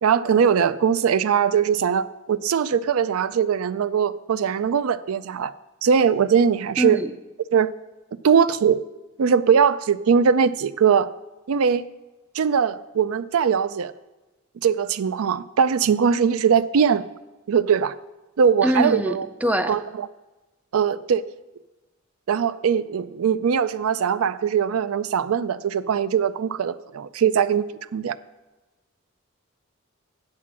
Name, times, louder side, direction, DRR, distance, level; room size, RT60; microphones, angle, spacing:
voice 1, 0.0-5.5 5.8-7.0 7.5-7.7 8.2-8.8 9.2-11.1 11.5-11.9 12.3-13.9 14.6-17.1 17.5-17.9 18.4-19.3 19.7-20.1 20.7-21.2 22.3-27.7 27.9-28.2, right 7 dB, 85° right, 16 dB, 0.4 m, -21 dB
voice 2, 6.8-7.1 18.6-19.8, right 1 dB, 5° right, 10 dB, 0.4 m, -23 dB
8.3 x 7.6 x 6.1 m, 1.1 s
head